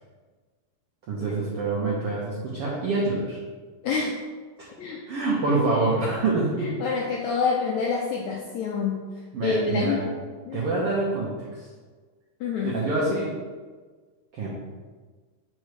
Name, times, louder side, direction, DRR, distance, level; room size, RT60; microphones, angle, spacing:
voice 1, 1.1-3.4 4.6-4.7 5.1-6.7 9.3-10.0 10.5-11.3 12.6-13.3 14.3-14.5, right 3 dB, 80° right, -5 dB, 1.3 m, -26 dB
voice 2, 3.8-4.1 4.8-5.0 6.6-9.1 9.4-10.1 10.5-10.7 12.4-12.7, left 5 dB, 80° left, -1 dB, 1.6 m, -27 dB
6.5 x 5.3 x 3.1 m, 1.4 s
omnidirectional pair, 3.9 m